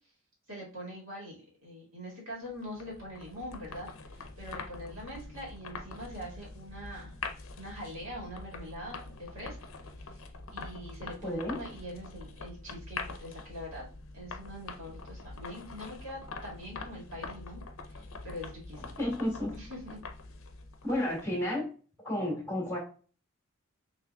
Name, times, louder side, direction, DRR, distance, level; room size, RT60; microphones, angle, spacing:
voice 1, 0.5-7.1 7.6-9.6 10.0-10.2 10.5-13.9 14.1-18.9 19.5-20.0, equal, 70° right, -3 dB, 2.0 m, -43 dB
sound 1, 2.5-21.5, left 3 dB, 70° left, 0.6 m, -44 dB
voice 2, 11.2-11.6 19.0-19.5 20.8-21.7 22.0-22.8, left 1 dB, 15° left, -2 dB, 2.1 m, -31 dB
5.7 x 3.2 x 2.3 m, 0.38 s
head